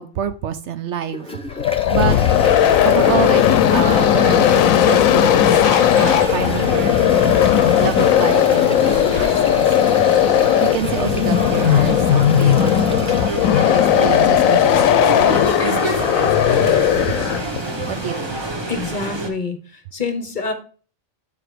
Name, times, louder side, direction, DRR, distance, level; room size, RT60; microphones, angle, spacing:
voice 1, 0.0-1.4 1.7-2.2 2.8-5.6 6.0-7.0 7.8-10.0 10.3-13.3 13.7-17.3 17.9-18.4, right 9 dB, 65° right, 11 dB, 0.8 m, -27 dB
Toilet flush, 1.1-19.0, left 1 dB, 5° left, 0.6 m, -37 dB
sound 1, 1.5-17.6, left 10 dB, 90° left, 1.0 m, -16 dB
sound 2, 2.0-19.3, right 2 dB, 20° right, 1.0 m, -28 dB
voice 2, 18.7-20.5, left 4 dB, 40° left, 7 dB, 0.9 m, -26 dB
6.8 x 4.8 x 4.9 m, 0.40 s
omnidirectional pair, 1.4 m